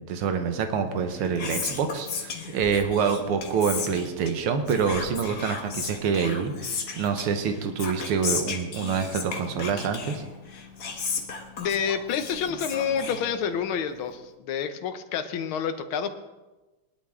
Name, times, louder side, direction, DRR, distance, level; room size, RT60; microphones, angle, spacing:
voice 1, 0.0-10.2, right 6 dB, 85° right, 7 dB, 2.0 m, -26 dB
Whispering, 0.9-13.8, left 5 dB, 50° left, 1.7 m, -35 dB
voice 2, 11.6-16.1, left 7 dB, 75° left, 8 dB, 1.7 m, -28 dB
19.5 x 11.5 x 3.7 m, 1.1 s
omnidirectional pair, 2.4 m